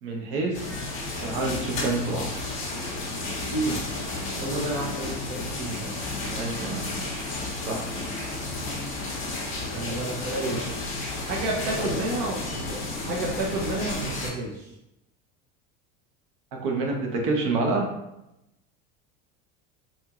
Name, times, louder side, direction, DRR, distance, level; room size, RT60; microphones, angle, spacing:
voice 1, 0.0-0.7 1.2-2.3 6.3-7.9 11.8-12.1 16.5-17.8, right 3 dB, 70° right, 0 dB, 0.9 m, -28 dB
sound 1, 0.5-14.3, left 2 dB, 25° left, 1.2 m, -32 dB
voice 2, 3.4-3.8 4.4-6.0 9.7-10.7 11.3-12.8 13.1-14.7, right 2 dB, 40° right, -2 dB, 0.6 m, -30 dB
4.1 x 2.9 x 2.4 m, 0.88 s
cardioid pair, 160°, 29 cm